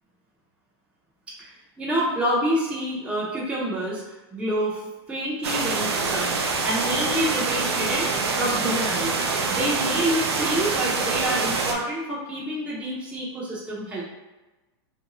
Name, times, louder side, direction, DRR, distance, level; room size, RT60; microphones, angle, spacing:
voice 1, 1.4-4.8 5.1-6.3 6.6-9.2 9.5-14.0, right 1 dB, 10° right, -6 dB, 0.6 m, -27 dB
sound 1, 5.4-11.7, right 4 dB, 90° right, 0.5 m, -25 dB
2.6 x 2.2 x 2.9 m, 1.1 s
hypercardioid pair, 130°, 13 cm